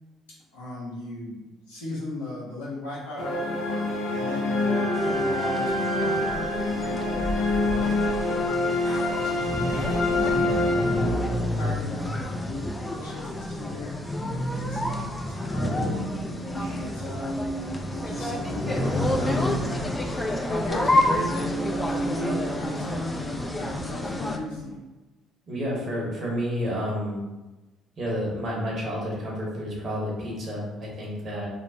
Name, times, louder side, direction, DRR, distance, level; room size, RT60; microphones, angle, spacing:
voice 1, 0.5-1.4 1.7-3.5 4.1-8.0 8.8-10.3 10.9-14.0 14.5-16.0 16.5-20.0 20.5-24.6, left 1 dB, 90° left, -7 dB, 0.9 m, -37 dB
sound 1, 3.2-11.5, left 2 dB, 70° left, 0.5 m, -26 dB
sound 2, 4.9-24.4, left 1 dB, 15° left, 0.4 m, -29 dB
sound 3, 15.0-24.8, right 2 dB, 35° left, 1.3 m, -36 dB
voice 2, 25.5-27.2 28.0-31.5, equal, 50° right, -4 dB, 1.1 m, -30 dB
3.0 x 2.0 x 2.7 m, 1.1 s
hypercardioid pair, 55°, 0 cm